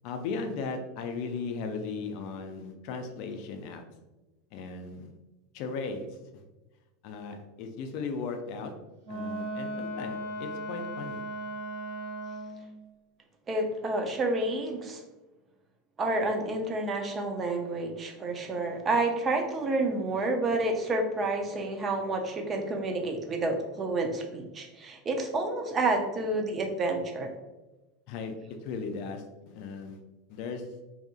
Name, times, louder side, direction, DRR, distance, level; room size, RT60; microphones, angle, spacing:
voice 1, 0.0-3.8 4.5-5.1 5.5-6.4 7.0-8.7 9.1-11.2 28.1-28.3 28.6-30.0 30.3-30.7, left 4 dB, 60° left, 6 dB, 0.4 m, -37 dB
Wind instrument woodwind instrument, 9.0-12.7, right 1 dB, 90° right, 1.3 m, -37 dB
voice 2, 13.5-15.0 16.0-27.3, right 2 dB, 30° right, 3 dB, 0.5 m, -29 dB
2.7 x 2.4 x 2.4 m, 1.1 s
hypercardioid pair, 95°, 0 cm